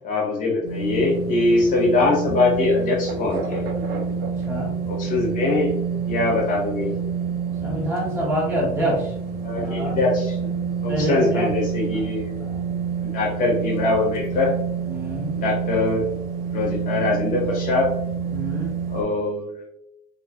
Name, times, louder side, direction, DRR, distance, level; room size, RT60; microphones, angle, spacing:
voice 1, 0.0-3.7 4.9-5.7 6.0-6.9 9.4-12.3 13.0-14.5 15.3-16.1 16.5-17.9 18.9-19.7, left 2 dB, 55° left, -2 dB, 0.9 m, -22 dB
sound 1, 0.6-19.0, right 6 dB, 70° right, 0.5 m, -28 dB
voice 2, 4.1-4.7 7.6-9.1 9.5-9.9 10.9-11.5 12.4-12.6 14.9-15.4 18.3-18.7, equal, 15° right, -7 dB, 1.2 m, -27 dB
2.6 x 2.4 x 2.3 m, 0.79 s
cardioid pair, 140°, 16 cm